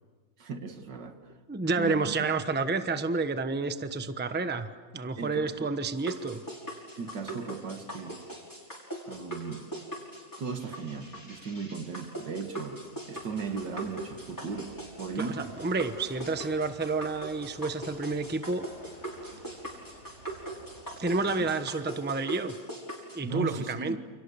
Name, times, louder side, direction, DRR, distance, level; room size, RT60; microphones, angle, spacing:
voice 1, 0.4-1.2 1.8-2.1 5.2-5.7 7.0-8.2 9.1-9.7 10.4-12.8 13.1-14.7 15.0-15.4 21.2-21.3 23.2-24.0, right 5 dB, 80° right, 6 dB, 2.4 m, -36 dB
voice 2, 1.5-6.4 15.1-18.7 21.0-22.5 23.1-24.0, right 3 dB, 10° right, 9 dB, 0.8 m, -30 dB
sound 1, 6.0-23.2, right 1 dB, 10° left, 6.0 m, -41 dB
sound 2, 13.1-21.6, right 1 dB, 40° right, 4.9 m, -53 dB
29.5 x 29.0 x 7.0 m, 1.5 s
omnidirectional pair, 1.9 m